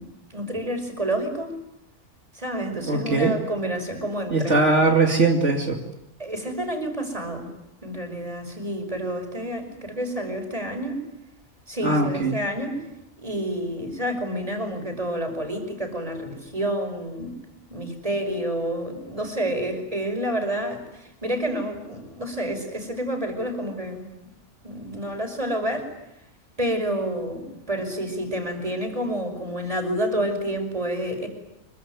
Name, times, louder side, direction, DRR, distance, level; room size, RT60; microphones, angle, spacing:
voice 1, 0.0-1.5 2.3-4.6 6.2-7.5 7.8-11.0 11.7-12.8 13.2-17.4 17.7-24.1 24.6-25.9 26.6-31.3, right 1 dB, 25° right, 6 dB, 5.6 m, -29 dB
voice 2, 2.9-3.4 4.3-5.8 11.8-12.4, right 3 dB, 65° right, 2 dB, 2.9 m, -20 dB
26.0 x 23.5 x 9.6 m, 0.83 s
omnidirectional pair, 1.3 m